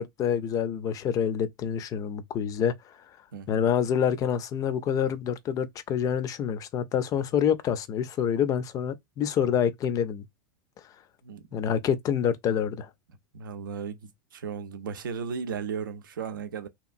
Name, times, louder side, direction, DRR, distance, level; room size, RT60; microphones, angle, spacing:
voice 1, 0.0-2.7 3.5-10.2 11.5-12.9, left 8 dB, 35° left, 0.5 m, -27 dB
voice 2, 3.3-3.7 11.2-11.5 13.3-16.7, right 6 dB, 75° right, 0.5 m, -35 dB
2.9 x 2.3 x 2.5 m
hypercardioid pair, 95°, 11 cm